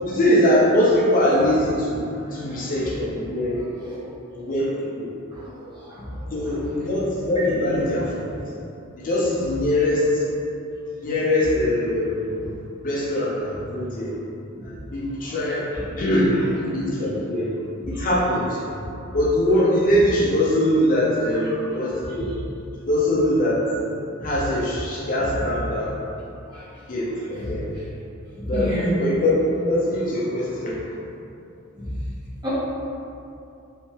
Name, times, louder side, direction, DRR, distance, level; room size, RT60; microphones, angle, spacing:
voice 1, 0.1-3.6 4.3-4.7 4.9-5.1 6.3-8.3 9.0-10.1 11.0-12.4 12.8-14.2 14.6-15.7 16.0-17.5 17.9-18.6 19.1-22.3 22.9-23.6 24.2-25.9 26.9-27.7 28.4-30.9, left 1 dB, 40° left, -6 dB, 0.5 m, -22 dB
voice 2, 2.3-2.7 3.6-4.0 5.3-6.2 7.4-7.8 14.6-14.7 15.7-15.9 17.9-18.0 24.2-24.3 25.3-25.4 26.5-26.8 27.3-27.4 28.3-28.9 31.7-31.9 32.4-32.5, equal, 20° right, -11 dB, 1.1 m, -32 dB
3.2 x 3.0 x 3.0 m, 2.7 s
head